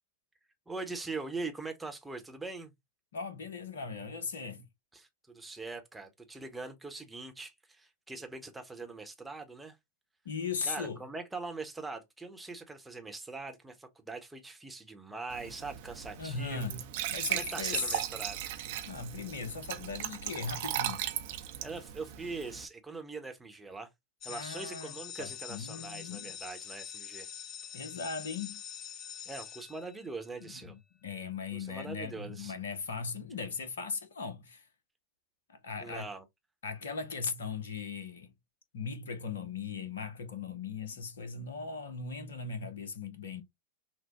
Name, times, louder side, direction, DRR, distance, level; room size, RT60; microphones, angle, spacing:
voice 1, 0.7-2.7 4.9-9.8 10.6-16.8 17.3-18.5 21.6-23.9 24.2-27.3 29.3-30.7 31.5-32.5 35.8-36.3, right 3 dB, 5° right, 1.0 m, -42 dB
voice 2, 3.1-4.6 10.2-11.0 16.2-16.8 17.1-17.9 18.8-21.0 24.3-24.9 25.2-26.4 27.7-28.6 30.4-34.6 35.5-36.1 36.6-38.3 38.7-43.4, left 5 dB, 65° left, 0.9 m, -38 dB
Glass / Trickle dribble / Fill (with liquid), 15.3-22.7, right 12 dB, 50° right, 0.6 m, -37 dB
sound 1, 24.2-30.4, left 9 dB, 35° left, 0.5 m, -45 dB
6.0 x 2.2 x 3.0 m
figure-of-eight pair, 90°, 0 cm